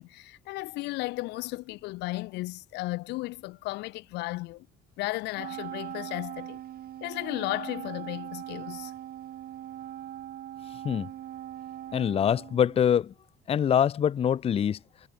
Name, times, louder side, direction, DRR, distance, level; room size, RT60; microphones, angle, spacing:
voice 1, 0.0-4.7 5.0-6.6 7.0-8.9, left 21 dB, 85° left, 0.8 m, -34 dB
Wind instrument woodwind instrument, 5.3-13.0, right 12 dB, 65° right, 4.1 m, -41 dB
voice 2, 11.9-13.1 13.5-14.8, left 9 dB, 35° left, 0.6 m, -24 dB
cardioid pair, 110°, 17 cm